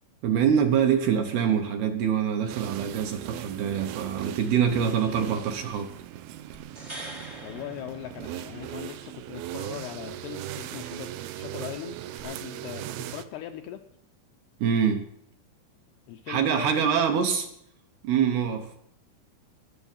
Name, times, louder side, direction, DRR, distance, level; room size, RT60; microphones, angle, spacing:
voice 1, 0.2-5.9 14.6-15.0 16.3-17.5 18.0-18.8, right 8 dB, 70° right, 5 dB, 2.6 m, -25 dB
sound 1, 2.5-13.2, right 13 dB, 85° right, 2.1 m, -39 dB
sound 2, 6.5-8.8 12.2-12.3, right 1 dB, 35° right, 0.4 m, -43 dB
voice 2, 7.4-11.1 11.4-13.8 16.1-17.0, left 12 dB, 80° left, 5 dB, 2.4 m, -40 dB
20.0 x 7.0 x 7.2 m, 0.72 s
omnidirectional pair, 5.4 m